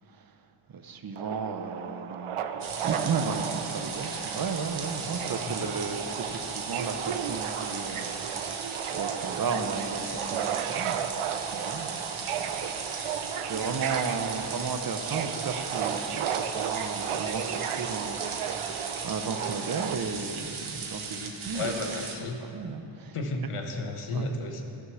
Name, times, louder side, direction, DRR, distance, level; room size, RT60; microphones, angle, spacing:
voice 1, 0.7-11.1 11.5-12.1 12.3-21.7 22.4-23.2 24.1-24.3, right 5 dB, 45° right, 8 dB, 0.7 m, -34 dB
Subway metro underground, 1.2-20.0, right 8 dB, 90° right, 0.6 m, -34 dB
sound 1, 2.6-22.2, right 5 dB, 70° right, 1.2 m, -37 dB
voice 2, 21.5-22.4 23.1-24.6, left 2 dB, 85° left, 4 dB, 1.2 m, -33 dB
12.0 x 6.5 x 6.2 m, 2.8 s
wide cardioid pair, 135°, 50 cm